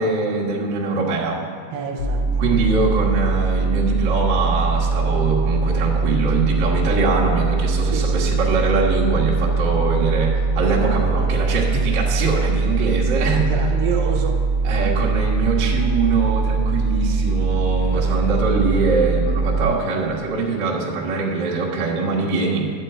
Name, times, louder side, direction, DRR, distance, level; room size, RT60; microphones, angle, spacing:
voice 1, 0.0-1.4 2.4-13.5 14.6-22.7, right 3 dB, 60° right, -4 dB, 1.2 m, -22 dB
voice 2, 1.7-2.3 2.5-2.7 7.9-8.3 13.4-14.4 17.9-18.7, right 6 dB, 80° right, 3 dB, 2.3 m, -29 dB
sound 1, 2.0-19.7, right 4 dB, 65° left, 2.3 m, -21 dB
10.5 x 4.5 x 7.8 m, 2.5 s
omnidirectional pair, 4.3 m